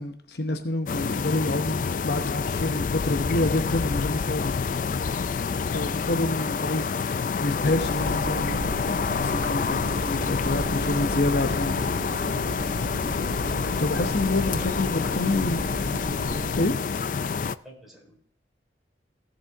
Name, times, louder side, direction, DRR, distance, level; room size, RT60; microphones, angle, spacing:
voice 1, 0.0-4.6 5.7-7.0 7.4-11.8 13.3-15.6 16.6-16.7, left 2 dB, 60° left, 7 dB, 0.9 m, -28 dB
sound 1, 0.9-17.6, left 5 dB, 45° left, 0.3 m, -27 dB
sound 2, 7.6-16.7, right 2 dB, 75° right, 0.7 m, -35 dB
voice 2, 14.6-15.8 17.3-18.2, right 1 dB, ahead, -3 dB, 4.0 m, -48 dB
17.0 x 7.5 x 3.6 m, 0.63 s
head